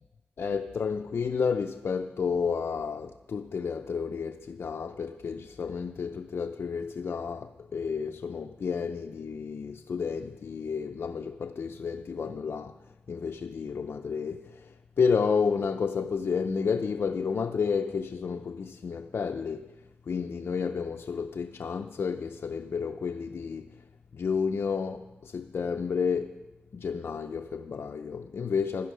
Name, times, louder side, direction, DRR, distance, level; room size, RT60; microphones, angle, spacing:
voice 1, 0.4-12.8 13.1-23.8 24.1-26.4 26.7-28.9, left 5 dB, 75° left, 0.6 m, -31 dB
17.5 x 11.0 x 6.7 m
wide cardioid pair, 80°, 4 cm